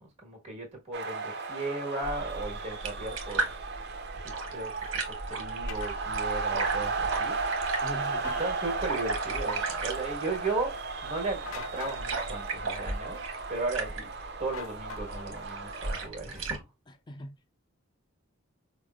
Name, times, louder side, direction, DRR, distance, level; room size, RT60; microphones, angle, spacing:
voice 1, 0.0-3.5 4.2-7.4 8.4-13.2 13.5-14.1 14.4-16.6, right 3 dB, 30° right, 1.3 m, -36 dB
sound 1, 0.9-16.1, right 4 dB, 50° right, 0.5 m, -35 dB
sound 2, 2.0-16.6, right 3 dB, 65° right, 0.9 m, -37 dB
sound 3, 5.7-5.9 8.1-8.5 11.5-12.0 14.5-15.3, left 5 dB, 80° left, 0.5 m, -41 dB
voice 2, 7.8-8.4 16.9-17.6, equal, 20° left, 0.3 m, -42 dB
4.9 x 2.0 x 2.3 m
head